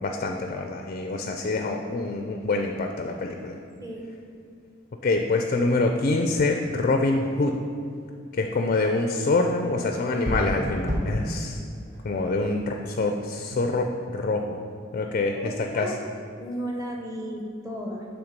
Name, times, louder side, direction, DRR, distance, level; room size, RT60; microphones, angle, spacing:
voice 1, 0.0-3.6 5.0-7.6 8.3-11.6 12.0-14.6 14.9-15.9, left 3 dB, 40° left, 4 dB, 0.4 m, -25 dB
sound 1, 8.3-13.2, equal, 35° right, 1.1 m, -33 dB
voice 2, 15.4-16.0 16.4-18.1, equal, 15° right, -1 dB, 0.9 m, -34 dB
8.8 x 3.4 x 5.1 m, 2.3 s
head